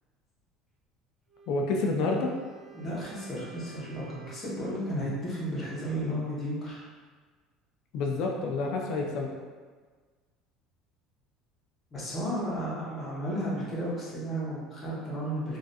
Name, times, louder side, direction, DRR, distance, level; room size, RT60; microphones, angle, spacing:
Wind instrument woodwind instrument, 1.3-4.8, right 8 dB, 30° right, 0.3 m, -52 dB
voice 1, 1.5-2.4 7.9-9.3, left 3 dB, 50° left, 1 dB, 0.3 m, -28 dB
voice 2, 2.7-6.8 11.9-15.6, equal, 20° left, -8 dB, 0.8 m, -33 dB
3.2 x 2.4 x 2.6 m, 1.5 s
cardioid pair, 170°, 0 cm